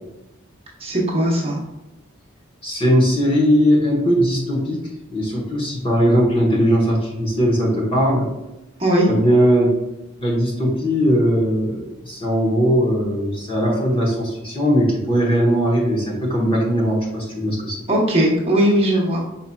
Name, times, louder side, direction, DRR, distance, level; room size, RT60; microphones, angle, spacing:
voice 1, 0.8-1.6 8.8-9.1 17.9-19.2, right 1 dB, 25° right, -4 dB, 0.9 m, -18 dB
voice 2, 2.6-8.3 9.1-9.7 10.2-17.8, equal, 25° left, -3 dB, 1.1 m, -19 dB
5.6 x 4.2 x 2.3 m, 0.96 s
head